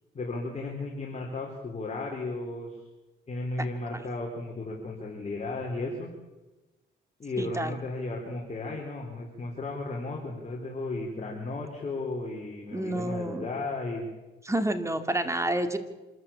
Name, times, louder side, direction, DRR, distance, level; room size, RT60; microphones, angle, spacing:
voice 1, 0.1-2.7 3.3-6.1 7.2-14.0, left 2 dB, 35° left, -2 dB, 4.1 m, -34 dB
voice 2, 7.4-7.7 12.7-13.5 14.4-15.8, right 1 dB, 15° right, 9 dB, 2.4 m, -29 dB
26.5 x 13.5 x 8.7 m, 1.1 s
cardioid pair, 90°, 20 cm